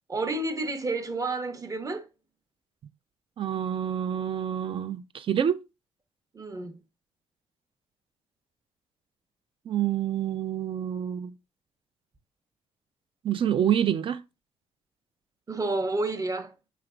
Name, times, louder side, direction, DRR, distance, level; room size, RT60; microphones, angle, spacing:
voice 1, 0.1-2.1 6.3-6.8 15.5-16.5, right 2 dB, 30° right, 0.8 m, -30 dB
voice 2, 3.4-5.6 9.7-11.3 13.2-14.2, right 9 dB, 45° right, 0.4 m, -27 dB
4.8 x 3.2 x 2.4 m
supercardioid pair, 65°, 12 cm